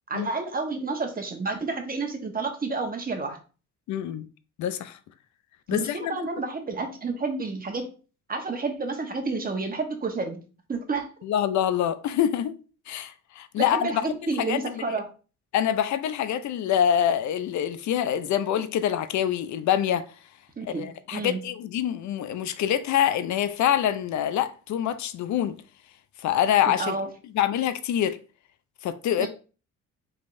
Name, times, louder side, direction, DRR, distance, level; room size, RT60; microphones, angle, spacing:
voice 1, 0.1-3.4 5.7-7.9 8.3-10.4 10.7-11.1 13.6-15.0 20.6-21.4 26.8-27.1 29.2-29.3, right 3 dB, 30° right, 1.1 m, -30 dB
voice 2, 3.9-4.2 4.6-5.0 5.7-6.3 11.2-12.6 12.9-14.8 15.5-20.1 20.6-25.6 26.2-27.0 27.3-28.2 28.8-29.3, left 10 dB, 70° left, 0.5 m, -25 dB
5.1 x 3.5 x 2.6 m
cardioid pair, 90°, 30 cm